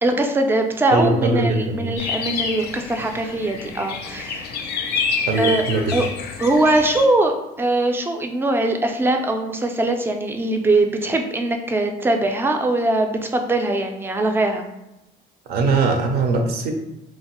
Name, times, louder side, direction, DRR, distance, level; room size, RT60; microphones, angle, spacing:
voice 1, 0.0-4.6 5.4-5.6 5.9-6.1 6.4-14.6, right 2 dB, 15° right, 5 dB, 0.3 m, -21 dB
voice 2, 0.9-1.9 5.3-6.0 15.5-16.7, right 3 dB, 70° right, 4 dB, 0.5 m, -21 dB
sound 1, 2.0-7.1, left 5 dB, 70° left, 0.4 m, -28 dB
2.9 x 2.0 x 2.8 m, 0.95 s
cardioid pair, 110°, 17 cm